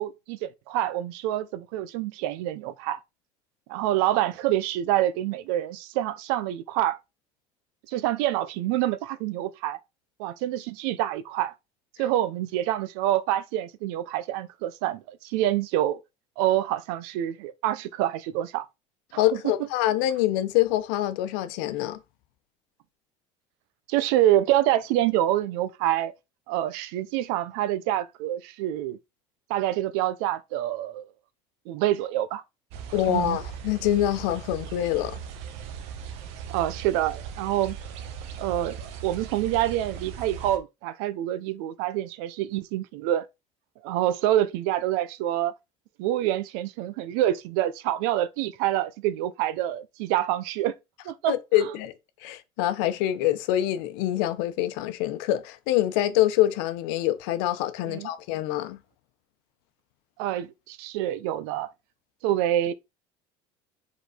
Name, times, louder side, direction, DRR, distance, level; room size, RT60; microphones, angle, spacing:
voice 1, 0.0-3.0 3.7-7.0 7.9-9.8 10.2-11.5 12.0-16.0 16.4-18.7 19.1-19.5 23.9-26.1 26.5-29.0 29.5-31.1 31.7-32.4 33.1-33.4 36.5-37.8 38.4-38.8 39.0-43.3 43.8-45.5 46.0-50.7 51.0-51.3 51.6-51.7 57.8-58.1 60.2-61.7 62.2-62.7, right 13 dB, 80° right, 0.7 m, -26 dB
voice 2, 19.2-22.0 32.9-35.2 51.3-51.9 52.2-58.8, left 13 dB, 85° left, 0.9 m, -25 dB
sound 1, 32.7-40.6, right 7 dB, 60° right, 1.1 m, -39 dB
5.2 x 4.0 x 5.0 m
cardioid pair, 170°, 12 cm